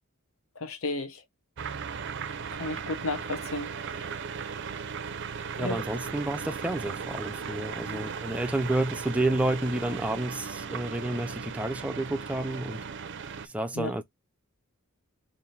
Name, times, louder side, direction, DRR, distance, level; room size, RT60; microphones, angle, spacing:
voice 1, 0.6-1.2 2.5-4.0 5.6-5.8 13.8-13.9, left 2 dB, 70° left, 0.9 m, -33 dB
sound 1, 1.6-13.5, right 6 dB, 55° right, 0.5 m, -37 dB
voice 2, 5.6-12.8 13.4-14.0, right 1 dB, 5° right, 0.4 m, -30 dB
3.5 x 2.6 x 4.3 m
head